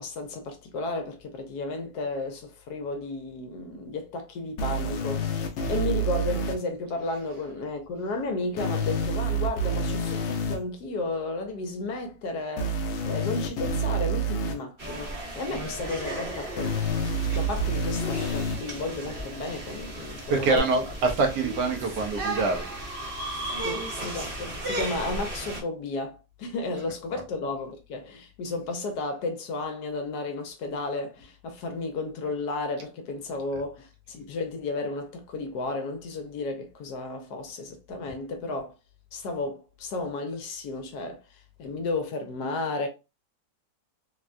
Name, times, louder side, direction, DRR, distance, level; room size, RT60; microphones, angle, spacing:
voice 1, 0.0-5.3 5.7-16.8 17.3-20.8 23.6-38.7 39.1-42.9, left 3 dB, 70° left, 1.1 m, -33 dB
sound 1, 4.6-6.5 8.6-10.6 12.6-14.5 16.6-18.6 20.6-20.7, right 1 dB, 85° left, 0.6 m, -28 dB
sound 2, 14.8-25.6, right 1 dB, 40° right, 0.9 m, -35 dB
voice 2, 20.3-23.2 27.1-27.2 33.5-33.6, right 3 dB, 75° right, 1.2 m, -26 dB
3.5 x 2.2 x 2.4 m
omnidirectional pair, 1.9 m